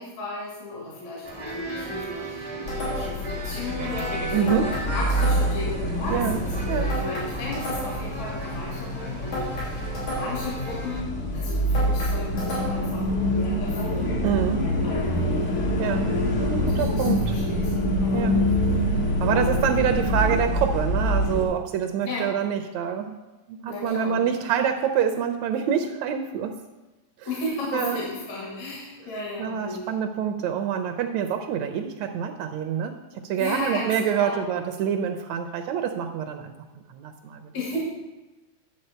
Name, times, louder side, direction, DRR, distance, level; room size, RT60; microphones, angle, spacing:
voice 1, 0.0-14.2 14.8-16.0 16.5-18.3 19.8-19.9 22.0-22.3 23.7-24.2 27.3-30.1 33.3-34.4 37.5-37.8, left 2 dB, 70° left, -4 dB, 3.3 m, -35 dB
sound 1, 1.2-11.0, right 1 dB, 35° right, 0.4 m, -36 dB
sound 2, 2.7-3.3 4.5-5.7 6.9-8.1 9.3-10.5 11.7-13.0, equal, 85° left, 5.0 m, -33 dB
sound 3, 2.7-21.4, equal, 50° left, 0.9 m, -26 dB
voice 2, 4.3-4.6 6.1-6.4 6.7-6.9 14.2-14.6 15.8-17.2 18.1-18.5 19.2-23.2 23.5-26.6 27.2-27.3 27.7-28.0 29.4-36.5 36.9-37.5, right 8 dB, 80° right, 6 dB, 1.8 m, -26 dB
10.5 x 7.2 x 4.3 m, 1.1 s
omnidirectional pair, 3.3 m